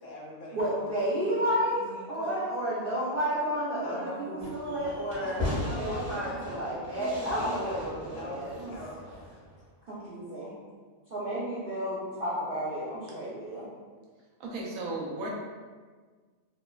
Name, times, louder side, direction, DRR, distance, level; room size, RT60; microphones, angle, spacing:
voice 1, 0.0-1.0 1.4-2.4 3.8-4.8 5.2-6.4 7.0-9.2, left 1 dB, 65° left, -4 dB, 0.9 m, -42 dB
voice 2, 0.5-5.4 5.8-8.7 9.9-10.5 11.1-13.7, equal, 65° right, -9 dB, 0.5 m, -31 dB
Fireworks, 4.4-9.6, left 1 dB, 35° right, 1.0 m, -38 dB
voice 3, 14.4-15.3, right 2 dB, 85° right, -3 dB, 1.0 m, -35 dB
2.9 x 2.1 x 2.2 m, 1.5 s
omnidirectional pair, 1.5 m